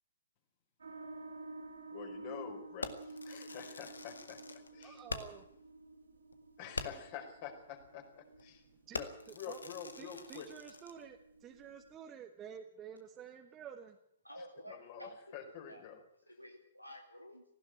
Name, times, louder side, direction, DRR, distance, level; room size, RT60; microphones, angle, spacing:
sound 1, 0.8-11.9, right 2 dB, 70° right, 3.8 m, -52 dB
voice 1, 1.9-5.0 6.6-8.6 8.9-10.5 14.4-16.0 16.3-16.4, left 8 dB, 35° left, 4 dB, 4.8 m, -48 dB
Fireworks, 2.8-5.5 5.9-6.0 6.3-6.4 6.7-7.2 7.8-8.0 8.3-8.6 8.9-11.0, left 3 dB, 70° left, 1.9 m, -44 dB
voice 2, 4.8-5.5 8.9-9.1 9.5-9.6 10.0-14.0, right 8 dB, 20° right, 4 dB, 1.6 m, -50 dB
voice 3, 14.2-15.1 15.7-15.8 16.3-17.4, equal, 90° left, 3 dB, 2.5 m, -51 dB
18.5 x 16.0 x 9.2 m, 0.70 s
figure-of-eight pair, 120°, 0 cm